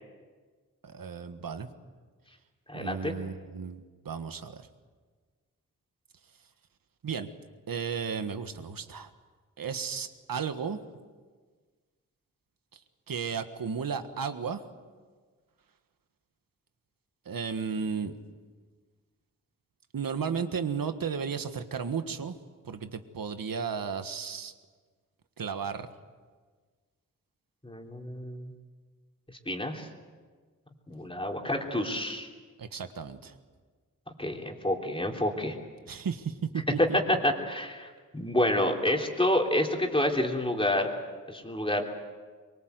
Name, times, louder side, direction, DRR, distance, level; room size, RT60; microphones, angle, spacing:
voice 1, 0.8-1.7 2.7-4.7 7.0-7.3 7.7-9.1 9.6-10.8 13.1-14.6 17.2-18.1 19.9-22.3 22.6-24.5 25.4-25.9 32.6-33.3 35.9-37.0, right 6 dB, 90° right, 8 dB, 1.6 m, -34 dB
voice 2, 2.7-3.1 27.6-28.5 29.4-29.9 30.9-32.3 34.2-35.6 37.1-40.9 41.3-41.8, left 1 dB, 15° left, 1 dB, 3.3 m, -28 dB
23.5 x 23.5 x 8.1 m, 1.5 s
wide cardioid pair, 95°, 33 cm